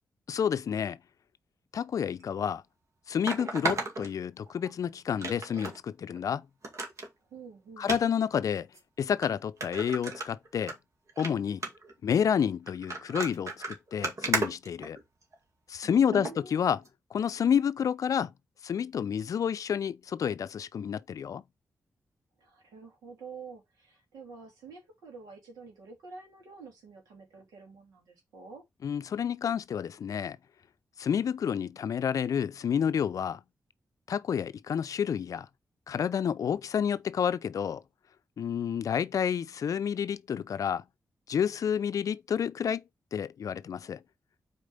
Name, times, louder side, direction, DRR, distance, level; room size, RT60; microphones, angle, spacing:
voice 1, 0.3-1.0 1.7-2.6 3.1-6.5 7.8-8.7 9.0-10.8 11.2-11.6 12.0-13.5 13.9-15.0 15.7-16.8 17.1-18.3 18.6-21.4 28.8-30.4 31.0-33.4 34.1-35.5 35.9-37.8 38.4-40.8 41.3-42.8 43.1-44.0, left 8 dB, 65° left, 0.5 m, -29 dB
sound 1, 2.2-2.3 3.3-4.7 5.2-5.8 6.1-6.2 6.6-7.1 7.8-8.0 8.7-8.8 9.2-9.3 9.6-10.7 11.1-11.3 11.6-11.9 12.7-15.3 16.1-16.3 16.9-17.0, right 3 dB, 55° right, 2.1 m, -34 dB
voice 2, 7.3-8.0 15.8-16.9 22.4-28.6, right 5 dB, 85° right, 2.8 m, -48 dB
4.9 x 4.4 x 5.4 m
supercardioid pair, 40°, 6 cm